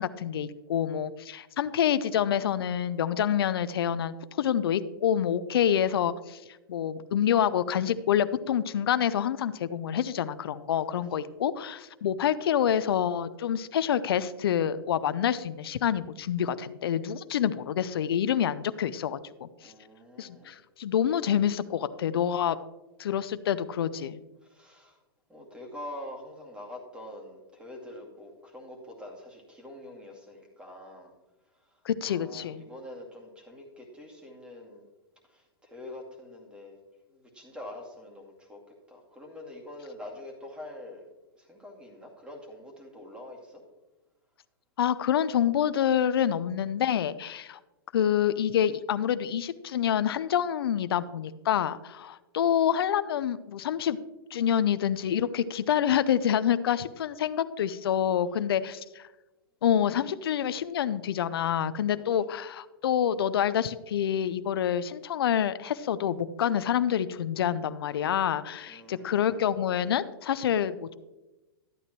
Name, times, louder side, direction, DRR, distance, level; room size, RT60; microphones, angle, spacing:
voice 1, 0.0-6.4 6.7-19.7 20.2-22.6 23.0-24.2 31.8-32.6 44.8-47.6 47.9-54.0 54.3-59.1 59.6-70.9, left 9 dB, 75° left, 14 dB, 0.5 m, -27 dB
voice 2, 10.9-11.3 19.6-20.6 24.4-25.0 25.3-31.1 31.5-34.9 35.2-36.8 37.1-38.6 38.9-41.1 41.4-43.6 58.3-58.4 68.7-69.5, left 1 dB, 10° right, 1 dB, 2.3 m, -45 dB
12.5 x 9.0 x 3.0 m, 1.1 s
hypercardioid pair, 130°, 13 cm